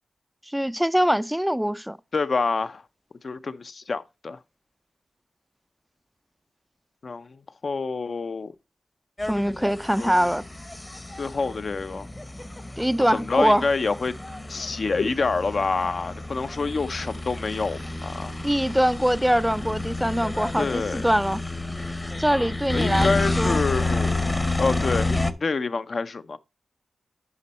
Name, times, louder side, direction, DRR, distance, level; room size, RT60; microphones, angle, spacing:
voice 1, 0.5-2.0 9.3-10.4 12.8-13.6 18.4-21.4 22.2-23.1 23.4-23.6, equal, 5° right, 0.4 m, -23 dB
voice 2, 2.1-2.8 3.2-4.4 7.0-8.5 9.6-9.7 10.0-10.3 11.2-12.1 13.1-14.1 14.5-18.4 20.6-21.0 22.7-24.3 24.6-26.4, left 4 dB, 55° left, 0.6 m, -27 dB
sound 1, 9.2-25.3, left 2 dB, 20° left, 0.8 m, -30 dB
9.8 x 5.3 x 4.1 m
cardioid pair, 70°, 0 cm